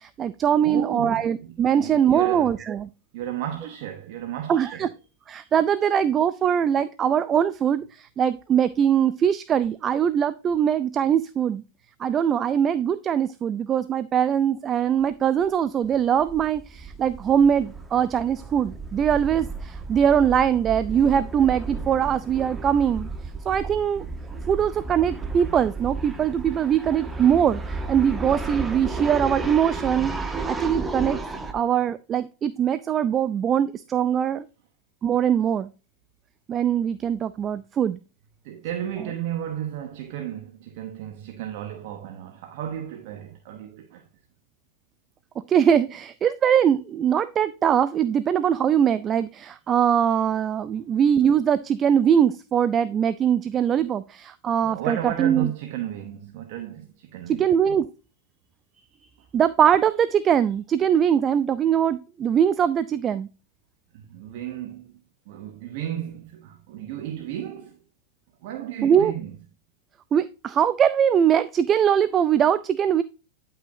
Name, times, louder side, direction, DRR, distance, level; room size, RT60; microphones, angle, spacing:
voice 1, 0.0-2.9 4.5-4.9 5.3-11.6 12.0-23.1 23.4-24.1 24.5-30.1 30.5-31.2 31.5-34.4 35.0-35.7 36.5-38.0 45.4-55.5 57.3-57.9 59.3-63.3 68.8-69.1 70.1-73.0, right 8 dB, 30° right, 0.4 m, -22 dB
voice 2, 0.6-2.6 3.1-4.9 38.4-44.1 54.6-57.8 63.9-64.9 65.3-67.8 68.4-69.4, right 11 dB, 65° right, 0.9 m, -34 dB
sound 1, 15.0-15.1 15.4-15.5 15.8-31.5, right 3 dB, 15° right, 1.0 m, -33 dB
9.9 x 5.6 x 2.6 m
hypercardioid pair, 110°, 0 cm